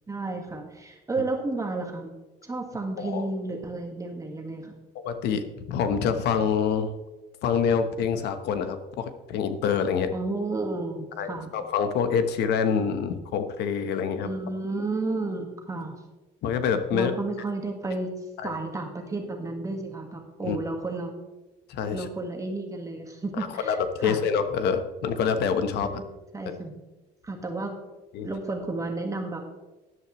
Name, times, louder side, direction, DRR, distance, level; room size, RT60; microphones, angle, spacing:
voice 1, 0.1-2.2 2.4-4.7 10.1-11.5 14.2-16.0 16.9-18.1 18.4-21.1 21.9-24.2 25.8-26.7 27.2-27.7 28.2-29.4, right 2 dB, 20° right, 2 dB, 1.6 m, -32 dB
voice 2, 5.0-5.4 5.7-6.9 7.4-10.1 11.2-14.3 16.4-17.1 18.4-18.5 20.4-20.6 21.7-22.1 23.4-23.8 24.0-26.0 28.1-28.3, left 6 dB, 80° left, 9 dB, 1.1 m, -26 dB
13.0 x 11.0 x 3.1 m, 1.1 s
cardioid pair, 110°, 17 cm